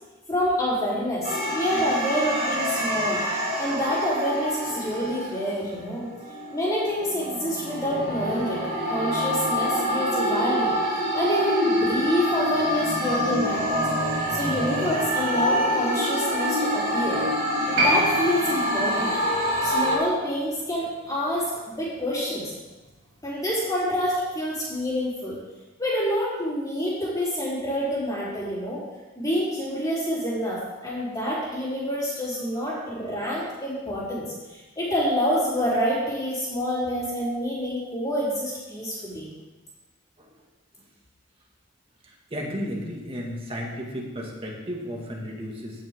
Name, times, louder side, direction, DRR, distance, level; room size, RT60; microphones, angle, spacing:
voice 1, 0.3-3.2 3.6-6.1 6.5-8.6 8.9-10.8 11.1-13.9 14.3-17.2 17.6-19.2 19.6-22.5 23.2-25.4 25.8-28.8 29.2-39.3, equal, 20° left, -8 dB, 4.0 m, -27 dB
sound 1, 1.2-5.6 6.2-20.0, equal, 45° right, 3.8 m, -26 dB
Piano, 17.7-24.7 25.0-25.1, right 1 dB, 70° right, 4.2 m, -31 dB
voice 2, 42.0-45.8, equal, 25° right, -2 dB, 2.2 m, -34 dB
17.0 x 6.7 x 3.8 m, 1.2 s
head